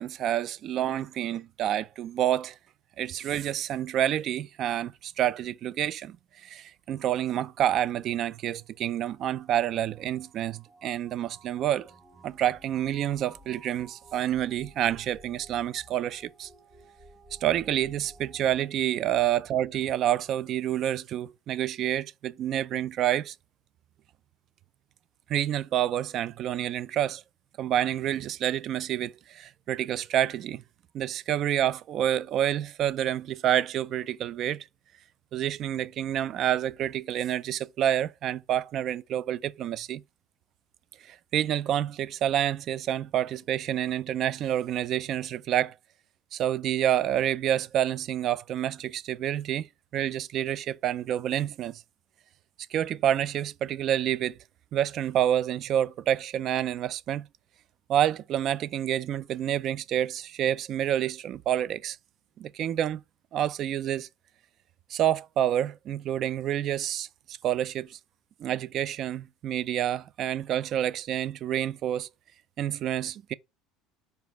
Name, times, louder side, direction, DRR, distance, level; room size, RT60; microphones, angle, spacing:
voice 1, 0.0-2.6 3.0-11.9 12.2-16.5 17.4-23.3 25.3-27.2 27.6-30.6 30.9-34.7 35.3-40.0 41.0-45.7 46.3-49.7 49.9-51.8 52.7-54.4 54.7-57.3 57.9-62.0 62.4-63.0 63.3-64.1 64.9-68.0 68.4-72.1 72.6-73.3, right 11 dB, 40° right, 0.3 m, -28 dB
sound 1, 7.5-18.7, right 2 dB, 5° right, 1.0 m, -54 dB
5.1 x 4.5 x 4.5 m
cardioid pair, 160°, 0 cm